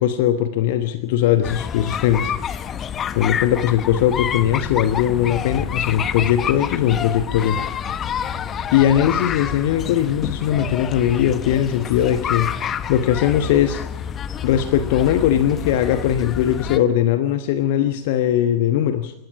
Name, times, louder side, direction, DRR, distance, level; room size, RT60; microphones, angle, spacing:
voice 1, 0.0-2.3 3.1-7.6 8.7-12.5 12.9-13.8 14.4-19.1, left 10 dB, 50° left, 8 dB, 1.2 m, -19 dB
sound 1, 1.4-16.8, left 8 dB, 25° left, 1.0 m, -28 dB
sound 2, 4.3-13.6, equal, 85° right, 7.0 m, -43 dB
28.5 x 16.0 x 6.0 m, 0.87 s
figure-of-eight pair, 90°, 0 cm